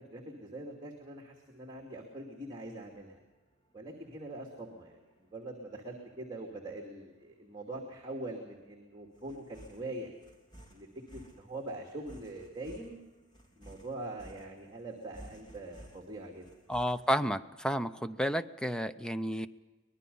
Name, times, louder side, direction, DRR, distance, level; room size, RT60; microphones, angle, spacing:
voice 1, 0.0-3.2 3.7-10.1 10.7-13.0 13.5-16.5, right 2 dB, 25° right, 1 dB, 2.6 m, -43 dB
sound 1, 0.9-17.2, right 1 dB, 25° left, 3.6 m, -57 dB
voice 2, 16.7-19.5, equal, 5° left, 12 dB, 0.6 m, -31 dB
24.0 x 20.5 x 5.5 m, 1.2 s
head